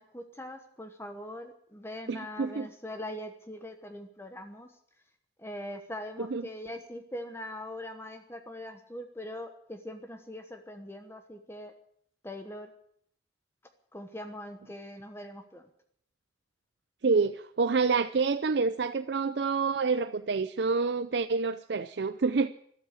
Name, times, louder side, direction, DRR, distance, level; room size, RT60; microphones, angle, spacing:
voice 1, 0.0-4.7 5.4-11.7 12.2-12.7 13.9-15.7, left 1 dB, 15° left, 6 dB, 1.1 m, -42 dB
voice 2, 2.1-2.7 6.3-6.4 17.0-22.5, right 4 dB, 70° right, 10 dB, 0.5 m, -27 dB
13.0 x 12.5 x 8.3 m, 0.67 s
head